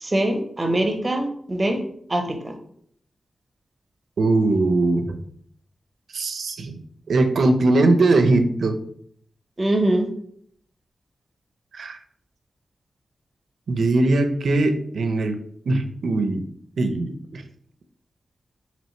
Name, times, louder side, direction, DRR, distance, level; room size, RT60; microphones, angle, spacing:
voice 1, 0.0-1.8 2.1-2.5 9.6-10.1, right 1 dB, 25° right, 4 dB, 0.6 m, -23 dB
voice 2, 4.2-5.2 6.1-6.8 7.1-8.8 11.7-12.0 13.7-15.4 15.7-16.4 16.8-17.4, right 2 dB, 75° right, 7 dB, 0.4 m, -20 dB
4.3 x 2.9 x 2.9 m, 0.64 s
wide cardioid pair, 125°, 0 cm